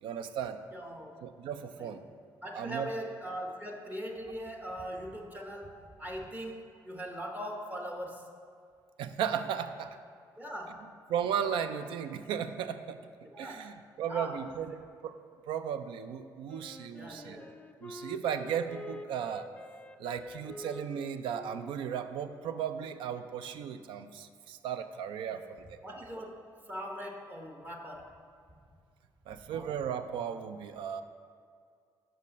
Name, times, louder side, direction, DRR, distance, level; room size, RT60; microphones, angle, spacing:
voice 1, 0.0-0.6 1.2-2.0 2.5-2.9 9.0-10.0 11.1-15.2 15.5-17.4 17.8-19.5 20.0-25.8 29.3-31.0, right 8 dB, 80° right, 10 dB, 0.4 m, -36 dB
voice 2, 0.7-1.5 1.8-1.9 2.4-8.3 10.4-10.9 13.2-13.8 14.1-14.8 16.9-17.6 25.3-25.4 25.8-28.1 29.3-29.7, equal, 20° right, 2 dB, 0.9 m, -41 dB
Wind instrument woodwind instrument, 16.5-23.2, left 1 dB, 15° left, 0.4 m, -48 dB
5.6 x 5.4 x 5.1 m, 2.2 s
supercardioid pair, 70°, 8 cm